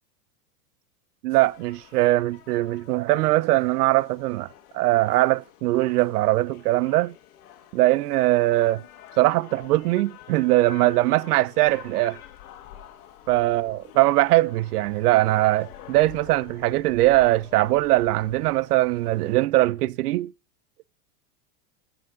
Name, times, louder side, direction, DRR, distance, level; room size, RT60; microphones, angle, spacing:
voice 1, 1.2-4.5 4.7-7.1 7.7-8.8 9.2-12.2 13.3-20.3, right 17 dB, 80° right, 0.6 m, -21 dB
sound 1, 1.3-19.3, left 11 dB, 65° left, 1.8 m, -47 dB
15.5 x 6.3 x 3.8 m
hypercardioid pair, 120°, 46 cm